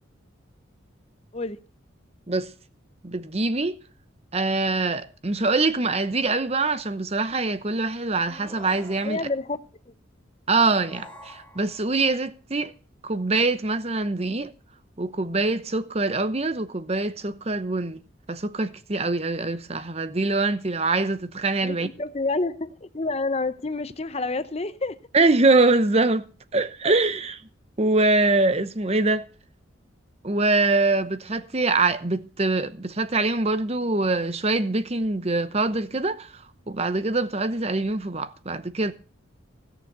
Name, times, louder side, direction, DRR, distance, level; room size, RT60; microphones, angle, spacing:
voice 1, 3.0-3.8 4.3-9.2 10.5-12.7 13.0-14.5 15.0-18.0 18.3-21.9 25.1-26.3 26.5-27.4 27.8-29.2 30.2-36.3 36.7-38.9, right 3 dB, 30° right, 0.8 m, -24 dB
sound 1, 8.2-9.5 10.6-11.9, equal, 5° left, 1.9 m, -46 dB
voice 2, 9.0-9.6 21.6-25.0, left 3 dB, 30° left, 0.7 m, -28 dB
16.5 x 6.9 x 6.8 m
head